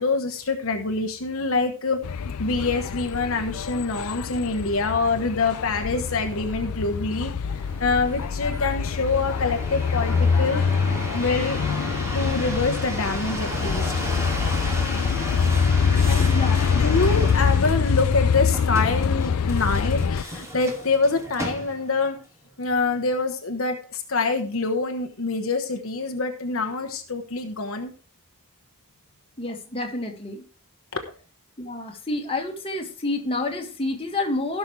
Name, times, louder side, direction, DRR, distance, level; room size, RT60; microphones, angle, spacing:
voice 1, 0.0-10.7 11.1-11.6 12.1-13.9 16.1-16.2 16.7-22.2 22.6-27.9, left 3 dB, 65° left, 5 dB, 1.2 m, -25 dB
sound 1, 2.0-20.2, left 6 dB, 85° left, 0.5 m, -25 dB
sound 2, 7.5-22.0 22.6-23.1, equal, 15° right, 2.5 m, -34 dB
voice 2, 29.4-30.4 31.6-34.6, left 2 dB, 25° left, 1 dB, 1.9 m, -29 dB
16.5 x 6.2 x 3.3 m, 0.39 s
head